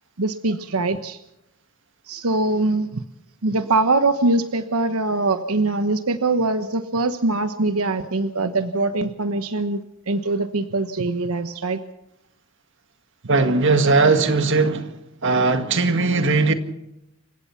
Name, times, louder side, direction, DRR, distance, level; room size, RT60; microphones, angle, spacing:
voice 1, 0.2-1.2 2.1-3.0 3.4-11.8, right 2 dB, 85° right, 1.1 m, -23 dB
voice 2, 13.3-14.9 15.2-16.5, right 3 dB, 60° right, 1.9 m, -18 dB
29.0 x 17.0 x 5.8 m
head